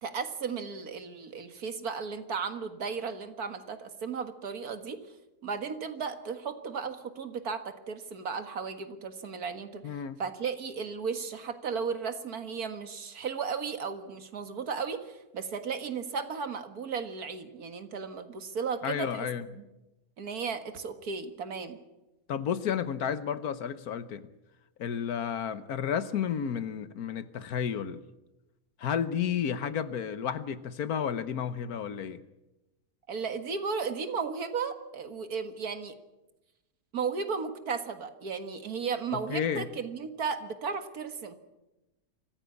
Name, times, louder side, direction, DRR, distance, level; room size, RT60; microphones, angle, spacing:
voice 1, 0.0-5.0 5.4-19.3 19.5-19.6 20.2-21.8 33.1-35.9 36.9-41.4, right 5 dB, 85° right, 8 dB, 2.1 m, -35 dB
voice 2, 9.8-10.2 18.8-19.5 22.3-24.3 24.8-28.0 28.8-32.2 39.1-39.7, left 8 dB, 85° left, 13 dB, 1.5 m, -32 dB
25.0 x 15.0 x 8.4 m, 1.0 s
omnidirectional pair, 1.6 m